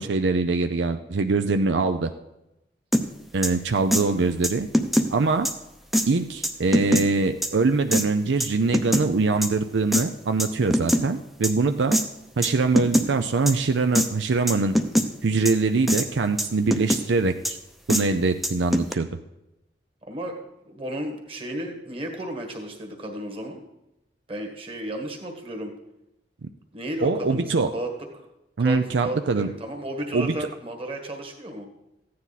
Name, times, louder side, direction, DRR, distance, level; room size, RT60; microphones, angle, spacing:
voice 1, 0.0-2.1 3.3-4.7 5.1-5.5 6.1-12.0 12.4-14.8 15.2-17.6 17.9-19.1 26.4-26.5 27.0-27.7 28.6-29.5 30.1-30.3, right 3 dB, 80° right, 8 dB, 0.5 m, -23 dB
sound 1, 2.9-3.0 3.4-3.5 3.9-4.0 4.4-5.1 5.5-5.6 5.9-6.1 6.4-7.0 7.4-7.5 7.9-8.0 8.4-9.1 9.4-9.5 9.9-10.0 10.4-11.0 11.4-11.5 11.9-12.0 12.4-12.5 12.8-13.1 13.5-13.6 14.0-14.1 14.5-15.1 15.5-15.6 15.9-16.1 16.4-17.0 17.4-17.5 17.9-18.0 18.4-18.9, equal, ahead, 0.6 m, -22 dB
voice 2, 4.0-4.4 20.0-20.3 20.7-23.6 24.3-25.7 26.7-28.2 28.6-31.7, right 1 dB, 30° right, 3 dB, 1.6 m, -34 dB
14.5 x 9.5 x 4.1 m, 0.88 s
head